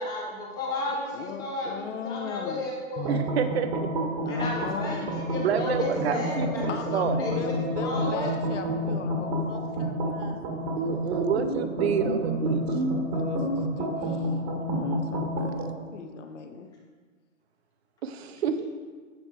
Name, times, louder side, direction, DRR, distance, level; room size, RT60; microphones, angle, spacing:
voice 1, 0.0-3.2 4.3-6.7 6.9-7.3 7.8-8.4, left 2 dB, 10° left, -2 dB, 0.6 m, -33 dB
voice 2, 1.1-2.7 4.2-5.2 6.7-11.2 13.1-14.3 14.7-15.5 15.9-16.7, left 6 dB, 60° left, 7 dB, 0.9 m, -38 dB
sound 1, 3.0-15.7, right 1 dB, 20° right, 1.0 m, -29 dB
voice 3, 3.1-3.9 5.4-7.2 10.8-12.6 18.0-18.7, right 7 dB, 50° right, 9 dB, 0.6 m, -28 dB
8.9 x 4.4 x 4.6 m, 1.5 s
hypercardioid pair, 145°, 41 cm